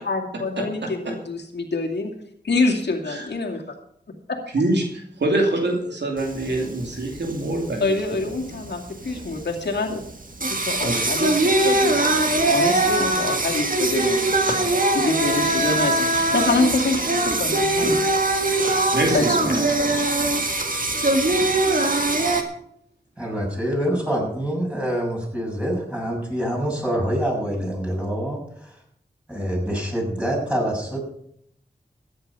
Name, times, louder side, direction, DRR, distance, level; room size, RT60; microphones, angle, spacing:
voice 1, 0.0-2.1 2.4-3.6 7.8-10.0 10.6-11.9 12.5-18.0 19.1-19.7, left 3 dB, 80° left, 1 dB, 2.4 m, -26 dB
voice 2, 0.8-1.1 3.1-3.3 4.5-8.0 10.8-10.9 14.5-14.6 18.9-20.0, right 1 dB, 85° right, 1 dB, 2.7 m, -25 dB
Singing, 6.2-22.4, right 2 dB, 50° right, 2.0 m, -22 dB
voice 3, 23.2-28.8 29.3-31.0, equal, 5° right, -2 dB, 6.7 m, -26 dB
14.5 x 10.0 x 5.6 m, 0.70 s
cardioid pair, 45°, 18 cm